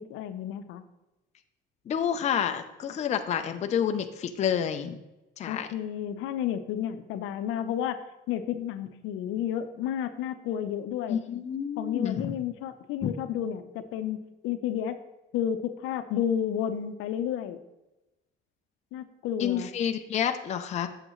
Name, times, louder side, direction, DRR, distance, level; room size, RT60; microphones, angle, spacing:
voice 1, 0.1-0.8 5.5-8.0 8.3-11.2 11.8-14.2 14.4-15.0 15.3-17.6 18.9-19.7, left 9 dB, 80° left, 10 dB, 0.7 m, -31 dB
voice 2, 1.9-5.0 5.4-5.7 11.1-12.4 13.0-13.1 19.4-20.9, left 8 dB, 35° left, 7 dB, 0.5 m, -29 dB
8.8 x 6.6 x 3.1 m, 1.0 s
cardioid pair, 135°, 21 cm